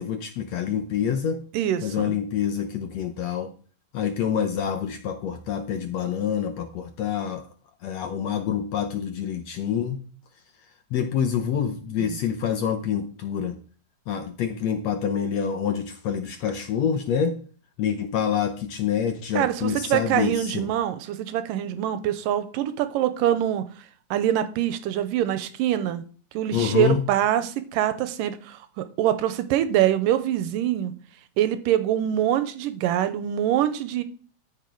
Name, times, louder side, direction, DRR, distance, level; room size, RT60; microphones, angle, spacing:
voice 1, 0.0-1.4 1.8-3.5 3.9-7.5 7.8-10.0 10.9-13.6 14.1-17.4 17.8-20.7 26.5-27.0, left 8 dB, 70° left, 6 dB, 1.7 m, -26 dB
voice 2, 1.5-2.1 12.0-12.2 19.3-23.6 24.1-26.1 26.3-30.9 31.4-34.0, right 11 dB, 80° right, 11 dB, 2.4 m, -24 dB
13.5 x 6.4 x 4.7 m, 0.41 s
omnidirectional pair, 4.0 m